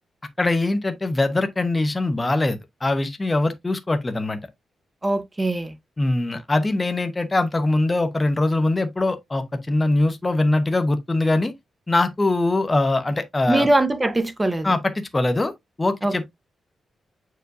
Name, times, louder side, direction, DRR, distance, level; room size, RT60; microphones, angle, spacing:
voice 1, 0.4-4.4 6.0-11.5 11.9-13.7 14.6-15.5 15.8-16.3, left 2 dB, 15° left, 0.8 m, -22 dB
voice 2, 5.0-5.7 13.5-14.7 16.0-16.3, right 2 dB, 15° right, 0.8 m, -22 dB
7.8 x 4.7 x 2.6 m
wide cardioid pair, 165°, 0 cm